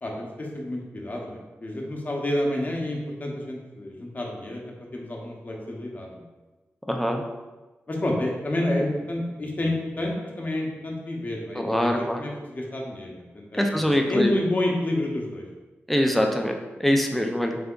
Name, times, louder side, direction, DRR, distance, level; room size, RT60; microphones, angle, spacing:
voice 1, 0.0-4.6 4.9-6.3 7.9-15.5, left 1 dB, 40° left, 0 dB, 0.9 m, -29 dB
voice 2, 6.9-7.2 11.5-12.2 13.5-14.3 15.9-17.6, equal, 5° left, 3 dB, 0.5 m, -23 dB
3.4 x 3.4 x 3.8 m, 1.2 s
wide cardioid pair, 90°, 5 cm